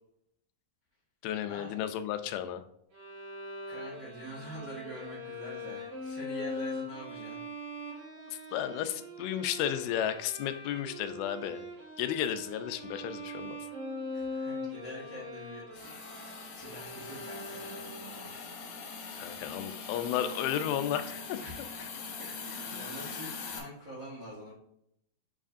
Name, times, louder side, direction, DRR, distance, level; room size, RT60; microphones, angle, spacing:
voice 1, 1.2-2.6 8.3-11.7 12.0-13.6 19.1-21.4 22.7-22.9, left 10 dB, 90° left, 10 dB, 2.5 m, -33 dB
Bowed string instrument, 2.9-18.2, left 1 dB, 55° right, 3.7 m, -42 dB
voice 2, 3.6-7.4 14.1-18.5 21.4-24.5, equal, 80° right, -7 dB, 0.7 m, -46 dB
Hiss, 15.8-23.6, left 5 dB, 65° left, 2.0 m, -42 dB
7.6 x 4.9 x 2.6 m, 0.74 s
omnidirectional pair, 4.3 m